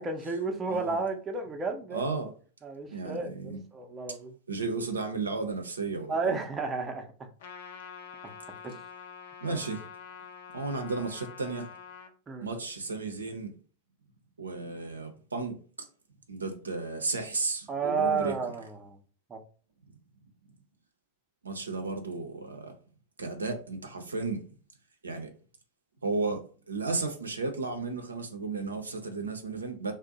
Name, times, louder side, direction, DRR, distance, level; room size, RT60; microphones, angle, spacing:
voice 1, 0.0-2.0 2.6-4.3 6.1-7.3 8.6-8.8 9.4-9.6 12.3-12.5 17.7-19.0 19.3-19.4, right 4 dB, 20° right, 0.5 m, -32 dB
voice 2, 0.7-1.0 1.9-2.3 2.9-3.6 4.5-6.4 9.4-9.8 10.5-11.7 12.4-13.5 14.4-15.6 16.3-18.3 21.4-22.7 23.2-24.4 25.0-25.3 26.0-29.9, right 3 dB, 75° right, 0.5 m, -33 dB
Trumpet, 7.4-12.1, left 6 dB, 55° left, 0.5 m, -46 dB
2.5 x 2.0 x 3.8 m
figure-of-eight pair, 90°, 0 cm